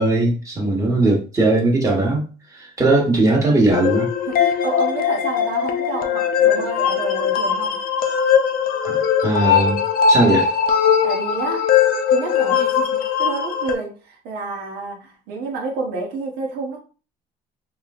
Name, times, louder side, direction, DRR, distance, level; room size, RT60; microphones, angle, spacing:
voice 1, 0.0-2.3 2.6-4.1 8.8-9.8 10.1-10.5, right 2 dB, 20° right, 1.2 m, -18 dB
voice 2, 0.6-1.1 4.3-7.8 11.0-12.9 13.2-16.8, right 3 dB, 90° right, 1.0 m, -29 dB
sound 1, 3.7-13.7, left 7 dB, 60° left, 0.5 m, -19 dB
3.1 x 3.0 x 2.4 m
cardioid pair, 110°, 17 cm